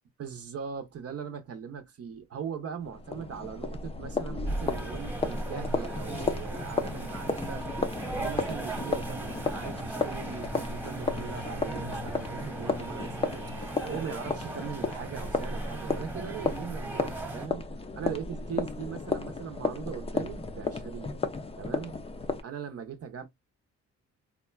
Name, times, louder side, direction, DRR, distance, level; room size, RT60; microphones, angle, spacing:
voice 1, 0.2-7.6 8.0-17.6 18.0-21.2 21.6-22.0 22.4-23.3, right 7 dB, 55° right, 0.7 m, -40 dB
sound 1, 2.8-22.4, left 3 dB, 20° left, 0.5 m, -34 dB
sound 2, 4.5-17.5, right 2 dB, 5° right, 1.1 m, -38 dB
3.6 x 2.2 x 2.2 m
cardioid pair, 90°, 30 cm